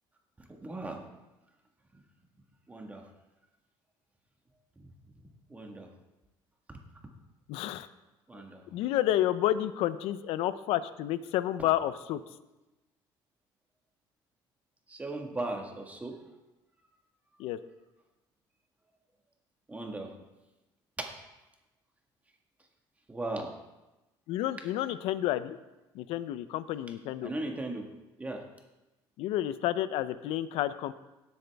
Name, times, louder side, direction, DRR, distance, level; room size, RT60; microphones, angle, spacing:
voice 1, 0.6-1.0 2.7-3.0 5.5-5.9 8.3-8.6 14.9-16.1 19.7-20.1 21.0-21.1 23.1-23.5 27.2-27.9 28.2-28.4, right 2 dB, 15° right, 2 dB, 1.6 m, -37 dB
voice 2, 7.5-7.9 8.7-12.2 17.4-17.6 24.3-25.6 25.9-27.3 29.2-30.9, left 13 dB, 80° left, 14 dB, 0.6 m, -30 dB
17.5 x 8.0 x 3.5 m, 1.0 s
cardioid pair, 125°, 10 cm